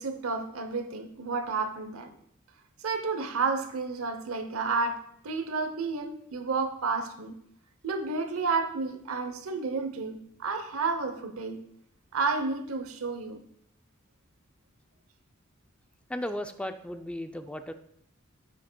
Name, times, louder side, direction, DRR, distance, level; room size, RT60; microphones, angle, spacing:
voice 1, 0.0-2.1 2.8-7.4 7.8-11.6 12.1-13.4, right 4 dB, 85° right, 8 dB, 0.8 m, -31 dB
voice 2, 16.1-17.7, left 1 dB, 5° left, 8 dB, 0.4 m, -35 dB
9.5 x 7.6 x 2.3 m, 0.72 s
head